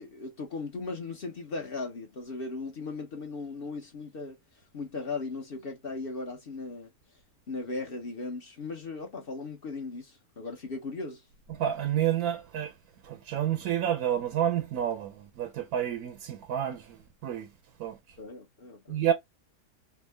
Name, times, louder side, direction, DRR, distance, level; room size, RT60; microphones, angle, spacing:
voice 1, 0.0-4.4 4.7-6.9 7.5-11.2 18.2-19.0, left 3 dB, 45° left, 0.9 m, -37 dB
voice 2, 11.5-12.7 13.0-17.5 17.8-18.0 18.9-19.1, right 10 dB, 85° right, 1.1 m, -29 dB
3.6 x 2.1 x 3.2 m
omnidirectional pair, 1.6 m